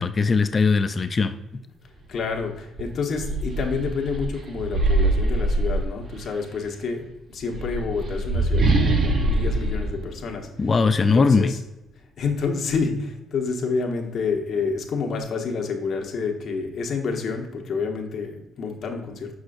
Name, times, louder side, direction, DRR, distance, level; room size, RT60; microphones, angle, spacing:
voice 1, 0.0-1.3 10.6-11.5, left 4 dB, 25° left, 10 dB, 0.3 m, -20 dB
voice 2, 2.1-10.5 11.0-11.6 12.2-19.3, left 5 dB, 50° left, 2 dB, 1.1 m, -28 dB
sound 1, 2.2-2.4 2.8-6.4 7.3-11.0, right 2 dB, 40° right, 0.8 m, -24 dB
6.3 x 6.2 x 2.5 m, 0.95 s
cardioid pair, 145°, 0 cm